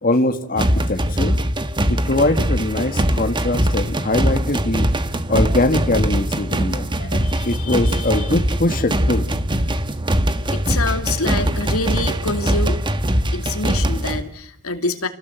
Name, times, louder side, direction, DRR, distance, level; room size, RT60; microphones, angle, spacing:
voice 1, 0.0-1.4 1.9-4.9 5.3-9.3, left 2 dB, 40° left, 6 dB, 1.7 m, -22 dB
sound 1, 0.6-14.2, equal, 20° right, 1.4 m, -21 dB
voice 2, 7.2-8.3 10.5-12.8 13.3-15.1, left 3 dB, 75° left, 7 dB, 2.7 m, -26 dB
29.5 x 18.5 x 8.2 m, 0.75 s
head